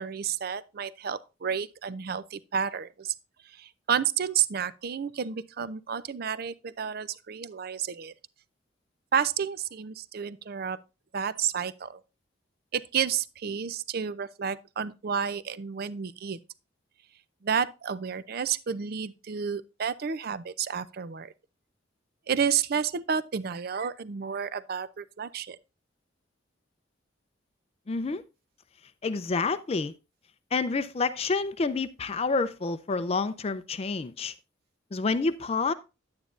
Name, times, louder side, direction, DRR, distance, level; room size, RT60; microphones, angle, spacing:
voice 1, 0.0-3.1 3.6-8.1 9.1-10.8 11.1-12.0 12.7-16.4 17.4-21.3 22.3-25.6, right 7 dB, 55° right, 0.5 m, -31 dB
voice 2, 27.9-28.2 29.0-29.9 30.5-34.3 34.9-35.7, left 4 dB, 30° left, 0.4 m, -28 dB
9.6 x 9.2 x 2.5 m
head